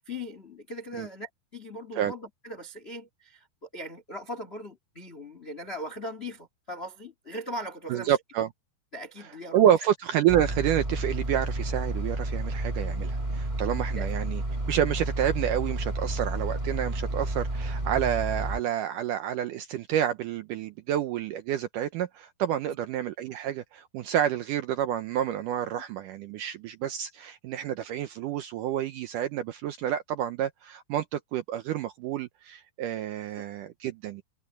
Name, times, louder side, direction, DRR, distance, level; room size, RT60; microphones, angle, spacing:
voice 1, 0.0-8.2 8.9-9.6 13.9-14.1, equal, 85° left, 0.5 m, -39 dB
voice 2, 7.9-8.5 9.5-14.4 14.7-34.2, right 10 dB, 80° right, 1.9 m, -29 dB
sound 1, 10.3-18.6, right 1 dB, 15° right, 1.4 m, -31 dB
omnidirectional pair, 4.6 m